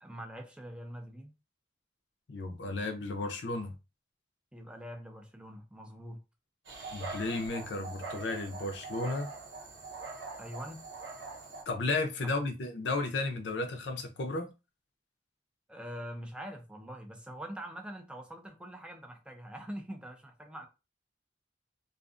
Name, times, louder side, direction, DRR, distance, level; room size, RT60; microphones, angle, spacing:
voice 1, 0.0-1.3 4.5-6.2 10.4-10.8 12.2-12.3 15.7-20.7, equal, 5° right, 0.4 m, -44 dB
voice 2, 2.3-3.7 6.9-9.3 11.7-14.5, left 3 dB, 70° left, 0.5 m, -33 dB
Dog, 6.6-11.6, right 4 dB, 75° right, 0.8 m, -43 dB
2.5 x 2.4 x 2.4 m
head